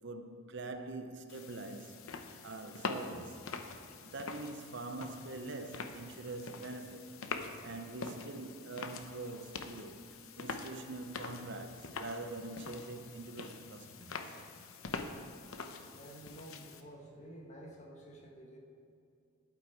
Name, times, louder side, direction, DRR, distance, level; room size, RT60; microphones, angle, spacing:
voice 1, 0.0-2.0 2.4-3.4 4.0-7.2 7.6-10.0 10.3-14.1, right 2 dB, 55° right, 0.7 m, -44 dB
sound 1, 1.3-16.8, left 4 dB, 75° left, 0.8 m, -45 dB
voice 2, 15.9-18.6, right 1 dB, 30° left, 1.4 m, -51 dB
11.5 x 8.7 x 4.7 m
head